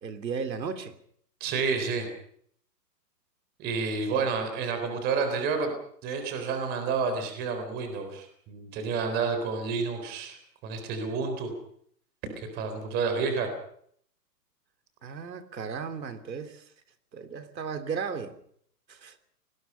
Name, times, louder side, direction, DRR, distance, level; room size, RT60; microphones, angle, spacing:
voice 1, 0.0-1.0 4.1-4.3 15.0-16.7 17.1-18.4 18.9-19.2, right 6 dB, 85° right, 9 dB, 3.2 m, -35 dB
voice 2, 1.4-2.1 3.6-5.7 6.0-10.4 10.6-11.5 12.4-13.5, right 5 dB, 20° right, 7 dB, 4.0 m, -29 dB
29.5 x 20.0 x 5.6 m, 0.65 s
hypercardioid pair, 165°, 50 cm